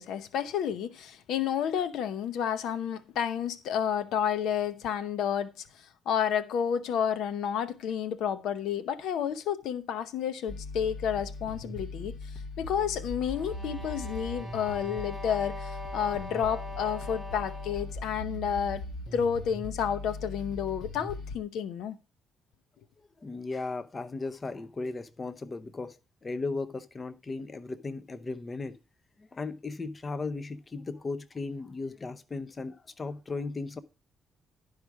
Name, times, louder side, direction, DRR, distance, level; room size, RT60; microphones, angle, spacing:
voice 1, 0.0-5.7 6.1-12.1 12.6-18.8 19.1-22.0, left 8 dB, 80° left, 0.8 m, -30 dB
sound 1, 10.5-21.4, left 2 dB, 60° left, 2.1 m, -40 dB
sound 2, 13.2-18.0, left 1 dB, 10° left, 3.9 m, -43 dB
voice 2, 23.2-28.8 29.2-33.8, left 3 dB, 30° left, 0.7 m, -36 dB
12.0 x 4.9 x 4.7 m
cardioid pair, 90°, 0 cm